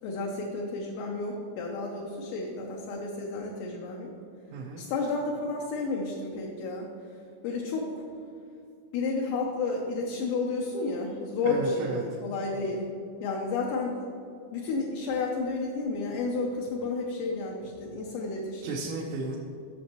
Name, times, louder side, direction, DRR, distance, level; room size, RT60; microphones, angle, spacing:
voice 1, 0.0-4.1 4.8-6.9 7.4-8.0 8.9-12.8 13.2-14.0 14.5-18.8, left 3 dB, 80° left, -1 dB, 2.6 m, -31 dB
voice 2, 4.5-4.8 11.5-12.0 18.6-19.4, right 3 dB, 80° right, -2 dB, 3.2 m, -33 dB
14.0 x 6.3 x 3.0 m, 2.5 s
omnidirectional pair, 5.7 m